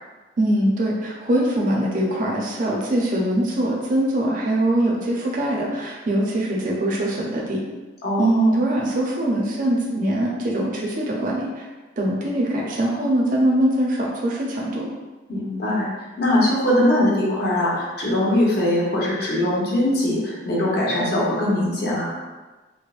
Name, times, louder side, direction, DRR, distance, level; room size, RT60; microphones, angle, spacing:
voice 1, 0.4-7.6 8.2-11.7 12.0-14.9, right 1 dB, 45° right, -3 dB, 0.5 m, -22 dB
voice 2, 8.0-8.5 15.3-15.9 16.2-22.2, left 1 dB, 55° left, -5 dB, 1.0 m, -21 dB
4.7 x 2.1 x 2.4 m, 1.2 s
head